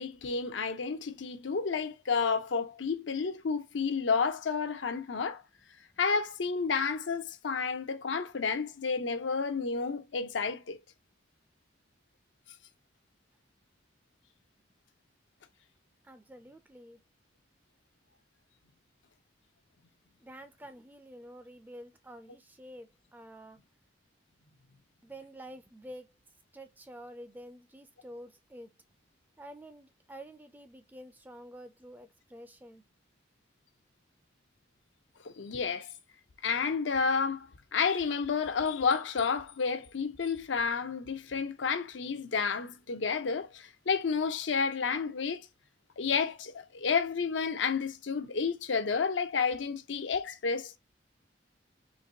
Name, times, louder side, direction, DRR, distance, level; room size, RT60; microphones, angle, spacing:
voice 1, 0.0-5.4 6.0-10.8 35.2-35.9 36.4-45.4 46.0-50.8, left 5 dB, 80° left, 0.6 m, -31 dB
voice 2, 16.0-17.0 20.2-23.6 25.0-26.1 26.5-28.7 29.4-32.8, right 1 dB, 10° right, 0.4 m, -49 dB
4.0 x 2.6 x 2.7 m
head